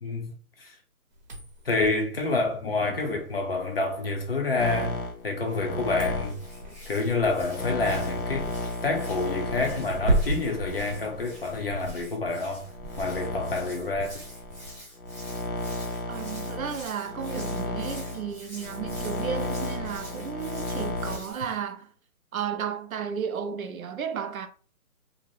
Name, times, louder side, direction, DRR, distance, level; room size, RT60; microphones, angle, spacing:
voice 1, 0.0-0.3 0.6-0.7 1.7-5.0 5.2-6.4 6.9-8.5 8.8-12.7 13.0-14.2, left 3 dB, 45° left, 0.6 m, -28 dB
sound 1, 1.1-11.6, right 1 dB, 30° right, 0.7 m, -34 dB
sound 2, 4.6-12.0 12.6-21.2, left 2 dB, 80° left, 0.8 m, -33 dB
Hands, 6.2-21.6, equal, 10° left, 0.9 m, -45 dB
voice 2, 16.1-21.9 22.3-24.5, right 8 dB, 70° right, 0.6 m, -33 dB
2.6 x 2.0 x 3.0 m
hypercardioid pair, 160°, 44 cm